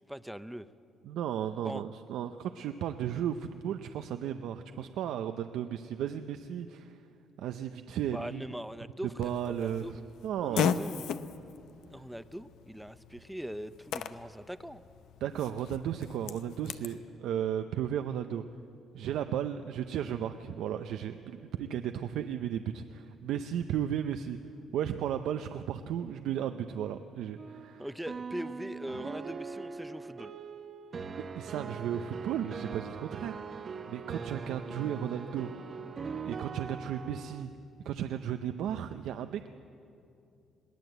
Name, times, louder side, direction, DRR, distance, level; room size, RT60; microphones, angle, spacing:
voice 1, 0.1-0.7 1.6-1.8 8.1-9.9 10.4-11.2 11.9-14.8 27.8-30.3, equal, 5° right, 13 dB, 0.7 m, -41 dB
voice 2, 1.1-7.0 7.4-8.4 9.2-10.7 15.2-18.4 18.9-24.4 24.7-27.8 31.2-35.5 36.3-37.5 37.8-39.5, right 9 dB, 85° right, 8 dB, 0.6 m, -34 dB
Fart, 9.2-17.0, left 8 dB, 80° left, 0.8 m, -37 dB
sound 1, 27.4-37.4, right 5 dB, 45° right, 1.1 m, -41 dB
22.0 x 17.0 x 8.0 m, 2.6 s
cardioid pair, 90°, 0 cm